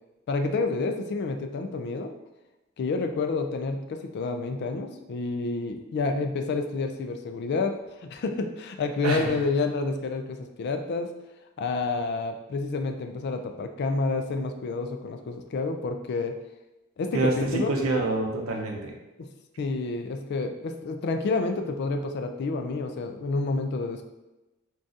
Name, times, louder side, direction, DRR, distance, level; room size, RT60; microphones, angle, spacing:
voice 1, 0.3-2.1 2.8-11.1 11.6-16.4 17.0-17.7 19.2-19.3 19.6-24.0, left 3 dB, 55° left, 6 dB, 0.3 m, -29 dB
voice 2, 9.0-9.4 17.1-18.9, right 2 dB, 85° right, 0 dB, 0.6 m, -26 dB
3.9 x 2.3 x 2.5 m, 1.0 s
head